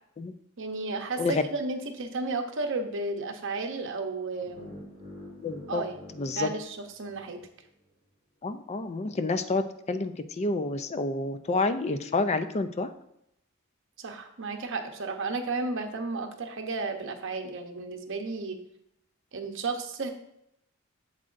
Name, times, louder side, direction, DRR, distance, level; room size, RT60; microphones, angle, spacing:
voice 1, 0.6-4.7 5.7-7.4 14.0-18.6 19.3-20.1, right 3 dB, 65° right, 5 dB, 0.9 m, -33 dB
sound 1, 4.4-7.5, left 1 dB, 25° right, 2.4 m, -47 dB
voice 2, 5.4-5.8 6.2-6.5 8.4-9.6 9.9-12.9, left 3 dB, 30° left, 10 dB, 0.4 m, -29 dB
7.6 x 7.5 x 2.6 m, 0.78 s
head